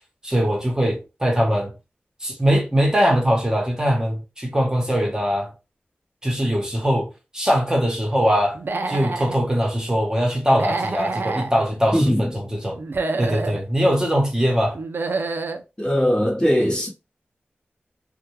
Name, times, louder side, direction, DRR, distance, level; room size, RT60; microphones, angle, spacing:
voice 1, 0.2-1.7 2.2-5.5 6.2-7.1 7.3-8.6 8.9-12.8 13.2-14.8, equal, 20° right, 0.9 m, -21 dB
Human voice / Animal, 8.5-9.4 10.5-11.5 12.8-13.6 14.8-15.6, right 3 dB, 65° right, 0.3 m, -27 dB
voice 2, 11.9-12.3 15.8-16.9, equal, 25° left, 0.9 m, -20 dB
2.1 x 2.1 x 2.9 m
wide cardioid pair, 55°, 4 cm